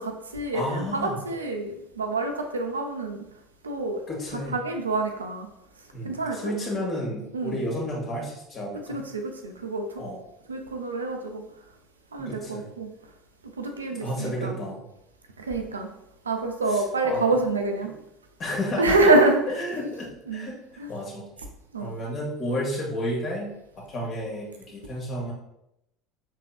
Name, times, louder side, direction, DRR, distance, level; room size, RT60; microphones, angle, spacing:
voice 1, 0.0-3.3 3.6-4.0 4.3-5.5 6.0-6.5 7.3-7.6 8.7-9.9 10.5-11.4 12.1-12.9 13.6-14.5 15.4-15.9 16.3-17.9 18.8-19.4 20.3-20.5 20.8-20.9 21.7-21.9, right 2 dB, 75° right, 4 dB, 0.5 m, -26 dB
voice 2, 0.5-1.2 4.1-4.5 5.9-9.0 10.0-10.2 12.2-12.7 14.0-14.9 16.7-17.3 17.8-17.9 18.4-19.1 19.6-20.6 20.9-21.2 21.8-23.5 23.9-25.3, equal, 35° left, -2 dB, 1.6 m, -31 dB
5.7 x 3.6 x 2.4 m, 0.82 s
figure-of-eight pair, 70°, 0 cm